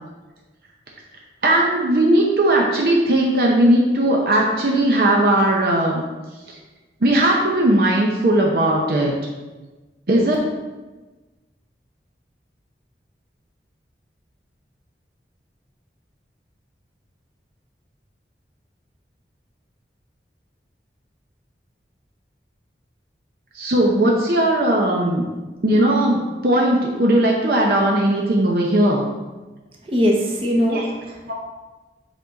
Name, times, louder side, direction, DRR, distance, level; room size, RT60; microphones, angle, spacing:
voice 1, 1.4-6.0 6.5-6.6 7.0-9.1 10.1-10.4 23.5-25.2 25.6-29.0 30.7-30.9 31.3-31.4, right 1 dB, 55° right, -1 dB, 0.7 m, -18 dB
voice 2, 29.9-30.8 31.1-31.3, equal, 30° right, -1 dB, 1.0 m, -20 dB
7.2 x 3.9 x 4.0 m, 1.2 s
head